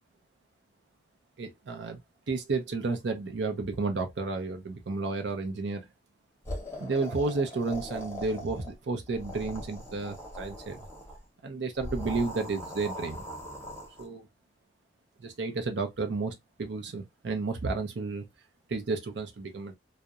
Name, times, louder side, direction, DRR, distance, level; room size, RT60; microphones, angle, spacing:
voice 1, 1.4-2.0 2.3-5.9 6.8-10.8 11.4-13.2 14.0-14.3 15.2-18.3 18.7-19.7, right 3 dB, 75° right, 0.5 m, -32 dB
sound 1, 6.4-8.8 9.1-11.2 11.8-14.1, equal, 15° left, 0.7 m, -40 dB
2.7 x 2.0 x 2.3 m
head